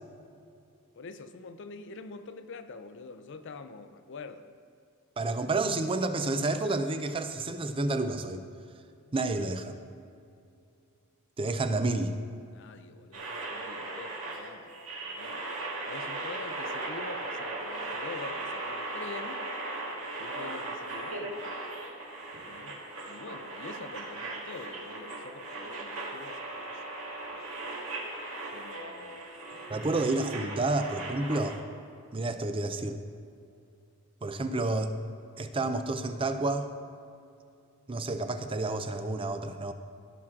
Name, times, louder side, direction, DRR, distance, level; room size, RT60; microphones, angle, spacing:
voice 1, 0.9-4.5 12.5-14.8 15.0-15.5 15.9-19.5 20.2-21.5 22.5-22.8 23.0-26.9 27.3-27.5 28.5-29.3 30.5-30.7, left 4 dB, 55° left, 10 dB, 0.5 m, -45 dB
voice 2, 5.2-8.4 9.1-9.8 11.4-12.1 29.7-31.6 32.1-33.0 34.2-34.9 35.4-36.7 37.9-39.7, right 2 dB, 25° right, 8 dB, 0.5 m, -30 dB
sound 1, 13.1-31.6, right 2 dB, 75° right, 1.8 m, -38 dB
16.0 x 6.0 x 3.7 m, 2.6 s
head